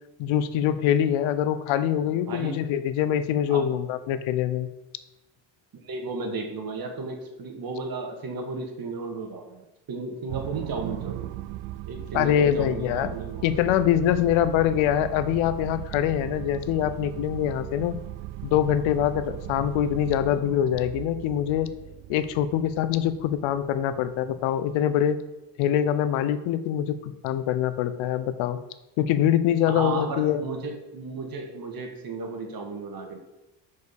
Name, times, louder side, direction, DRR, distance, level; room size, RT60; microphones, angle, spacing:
voice 1, 0.2-4.7 12.1-13.1 13.4-18.0 18.4-21.7 22.1-25.2 25.6-28.6 29.0-30.4, left 10 dB, 70° left, 12 dB, 0.9 m, -24 dB
voice 2, 2.1-2.5 3.5-3.7 4.4-4.5 5.8-11.3 11.9-13.5 29.7-33.2, right 3 dB, 45° right, 3 dB, 2.0 m, -34 dB
sound 1, 10.3-24.8, right 15 dB, 75° right, 0.5 m, -38 dB
6.3 x 5.3 x 7.0 m, 1.0 s
supercardioid pair, 90°, 49 cm